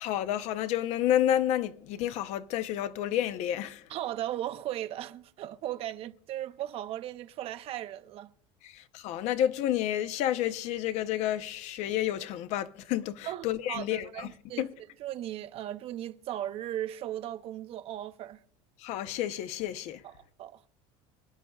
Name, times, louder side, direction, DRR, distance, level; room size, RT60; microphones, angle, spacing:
voice 1, 0.0-3.9 8.6-14.3 14.6-14.7 18.8-20.0, left 11 dB, 55° left, 0.7 m, -30 dB
voice 2, 3.9-8.3 13.3-14.7 15.0-18.4 20.0-20.6, right 12 dB, 45° right, 0.7 m, -37 dB
27.0 x 9.8 x 2.3 m
cardioid pair, 140°, 14 cm